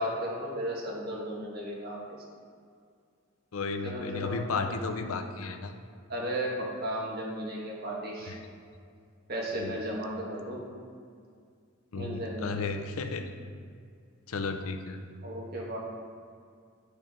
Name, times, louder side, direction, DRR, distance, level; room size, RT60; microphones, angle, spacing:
voice 1, 0.0-2.0 3.8-4.4 6.1-8.3 9.3-10.6 11.9-12.7 15.2-15.8, equal, 45° right, -3 dB, 1.6 m, -34 dB
voice 2, 3.5-5.7 8.3-8.4 9.6-9.8 11.9-13.3 14.3-15.0, left 4 dB, 85° left, 7 dB, 0.6 m, -33 dB
10.0 x 4.7 x 3.6 m, 2.2 s
head